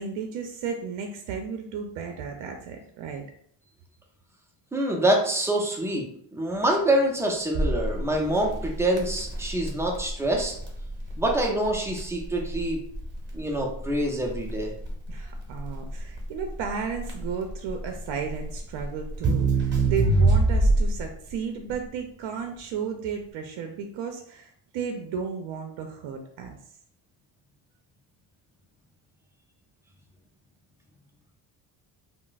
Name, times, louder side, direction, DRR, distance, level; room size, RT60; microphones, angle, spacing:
voice 1, 0.0-3.2 15.1-26.6, right 6 dB, 70° right, 4 dB, 0.5 m, -34 dB
voice 2, 4.7-6.1 6.3-10.5 11.2-12.8 13.3-14.7, right 1 dB, 5° right, 0 dB, 0.3 m, -25 dB
Crackle, 7.5-21.1, right 2 dB, 25° right, 0.7 m, -26 dB
2.3 x 2.0 x 3.8 m, 0.66 s
cardioid pair, 130°, 46 cm